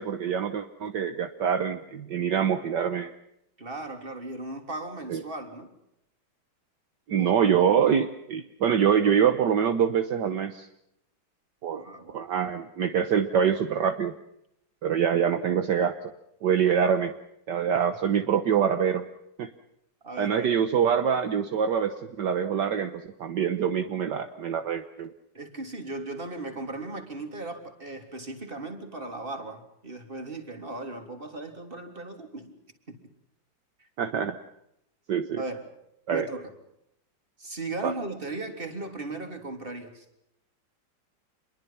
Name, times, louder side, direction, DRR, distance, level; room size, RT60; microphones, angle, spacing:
voice 1, 0.0-3.1 5.1-5.2 7.1-10.7 11.6-11.8 12.1-14.1 14.8-16.0 16.4-17.1 17.5-19.0 19.4-19.5 20.2-25.1 34.0-34.3 35.1-35.4 36.1-36.3 37.8-37.9, right 8 dB, 65° right, 8 dB, 1.7 m, -25 dB
voice 2, 3.6-5.7 7.2-7.8 11.7-12.2 20.0-20.5 25.3-32.6 32.9-33.0 33.8-33.9 35.4-35.6 36.1-36.5 37.4-40.1, right 2 dB, 25° right, 5 dB, 3.6 m, -37 dB
28.0 x 22.0 x 5.8 m, 0.81 s
omnidirectional pair, 2.1 m